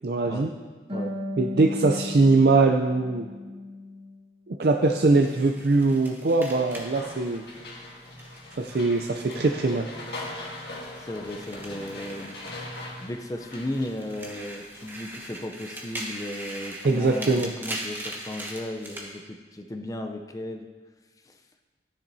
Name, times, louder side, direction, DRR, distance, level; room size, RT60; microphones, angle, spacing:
voice 1, 0.0-0.5 1.4-3.3 4.5-7.4 8.6-9.9 16.8-17.5, right 3 dB, 60° right, 3 dB, 0.5 m, -22 dB
Harp, 0.9-4.3 4.6-5.7, left 2 dB, 35° right, 2.3 m, -37 dB
sound 1, 5.2-9.8 10.1-13.0 13.4-19.1, right 1 dB, 10° right, 1.1 m, -40 dB
sound 2, 6.6-15.4, left 2 dB, 65° left, 1.8 m, -41 dB
voice 2, 11.0-12.4 13.0-20.7 21.2-21.4, left 1 dB, 20° left, 5 dB, 0.5 m, -35 dB
13.5 x 10.0 x 2.7 m, 1.3 s
head